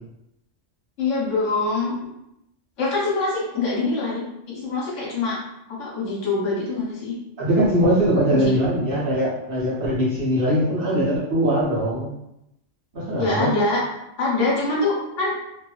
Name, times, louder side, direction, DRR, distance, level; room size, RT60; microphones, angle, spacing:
voice 1, 1.0-2.0 2.8-5.4 5.8-7.1 8.3-8.5 13.2-13.8 14.2-15.3, left 3 dB, 75° left, -5 dB, 1.2 m, -24 dB
voice 2, 7.4-12.1 12.9-13.5, equal, 50° right, -7 dB, 1.0 m, -21 dB
2.7 x 2.5 x 2.3 m, 0.84 s
omnidirectional pair, 1.3 m